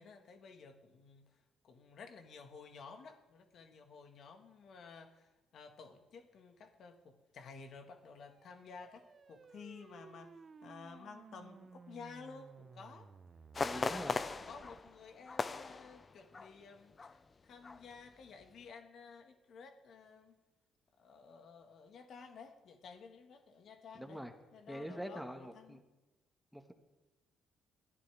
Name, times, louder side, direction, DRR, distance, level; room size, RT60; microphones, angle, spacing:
voice 1, 0.0-1.4 1.6-13.1 13.7-20.3 21.0-24.2 24.5-25.8, left 5 dB, 60° left, 6 dB, 1.6 m, -53 dB
sound 1, 8.0-14.9, right 5 dB, 40° right, 0.7 m, -57 dB
sound 2, 13.5-16.6 16.9-17.2 17.6-18.0 18.4-18.5, left 4 dB, 30° left, 0.7 m, -39 dB
voice 2, 13.6-14.2 24.0-24.3 24.7-25.8 26.5-26.7, equal, ahead, 6 dB, 1.6 m, -44 dB
20.5 x 12.5 x 3.5 m, 1.1 s
supercardioid pair, 70°, 0 cm